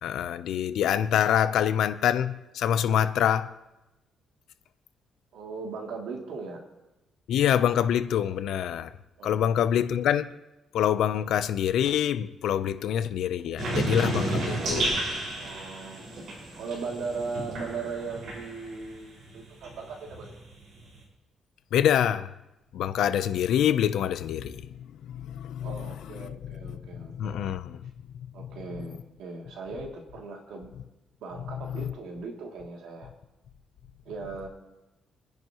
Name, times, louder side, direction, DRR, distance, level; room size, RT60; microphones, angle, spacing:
voice 1, 0.0-3.5 7.3-8.9 9.2-10.3 10.7-14.9 21.7-22.3 22.7-24.6 25.1-25.7 27.1-27.9, left 9 dB, 80° left, 0.7 m, -25 dB
voice 2, 5.3-6.6 9.2-9.5 15.4-16.0 16.6-20.3 25.6-27.5 28.3-30.7 31.2-33.1 34.0-34.5, right 4 dB, 90° right, 2.8 m, -38 dB
sound 1, 13.6-18.9 19.3-21.0, right 2 dB, 65° right, 5.7 m, -32 dB
28.0 x 10.5 x 3.1 m
cardioid pair, 125°, 0 cm